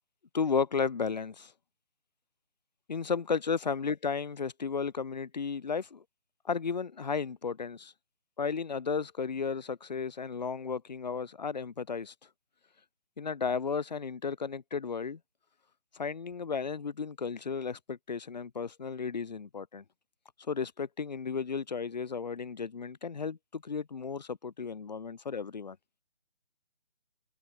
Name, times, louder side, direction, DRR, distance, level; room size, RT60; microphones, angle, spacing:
voice 1, 0.3-1.5 2.9-6.0 6.4-7.9 8.4-12.1 13.2-15.2 15.9-19.8 20.5-25.8, left 5 dB, 35° left, 2.3 m, -34 dB
figure-of-eight pair, 155°, 36 cm